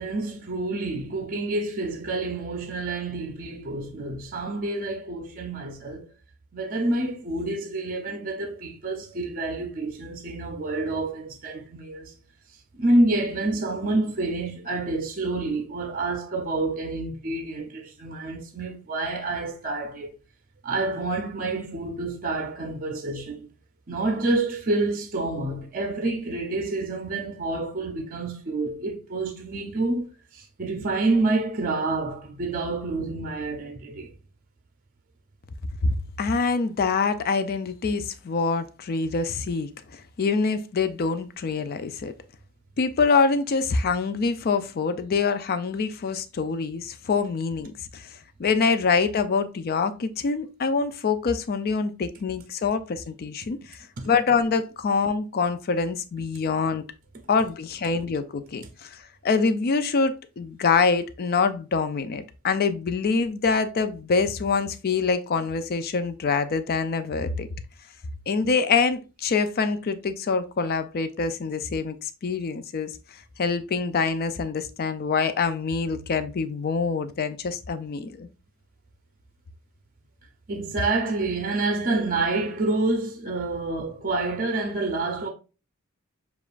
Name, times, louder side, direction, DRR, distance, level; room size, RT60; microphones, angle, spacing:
voice 1, 0.0-6.1 6.5-12.1 12.7-20.1 20.6-23.5 23.9-30.1 30.3-34.1 54.0-54.1 80.5-85.3, right 2 dB, 40° right, 0.6 m, -28 dB
voice 2, 35.8-42.1 42.8-56.8 57.3-67.5 68.3-72.9 73.4-78.3, left 4 dB, 45° left, 0.4 m, -25 dB
6.8 x 2.4 x 2.4 m
head